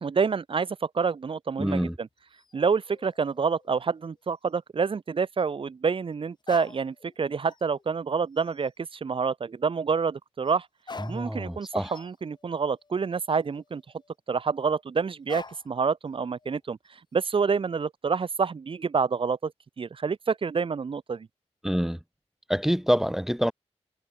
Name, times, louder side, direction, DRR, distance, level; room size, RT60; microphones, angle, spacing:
voice 1, 0.0-2.1 2.5-10.7 11.1-13.8 14.3-16.8 17.1-19.5 19.8-21.3, right 5 dB, 50° right, 0.9 m, -27 dB
voice 2, 1.6-2.0 11.0-12.0 21.6-22.0 22.5-23.5, equal, 5° right, 0.5 m, -26 dB
sound 1, 2.2-4.2 4.5-4.6 6.4-7.2 7.4-8.0 8.3-8.7 10.4-10.5 10.8-14.1 15.3-15.8 16.1-16.9, left 4 dB, 40° left, 1.9 m, -47 dB
wide cardioid pair, 115°, 12 cm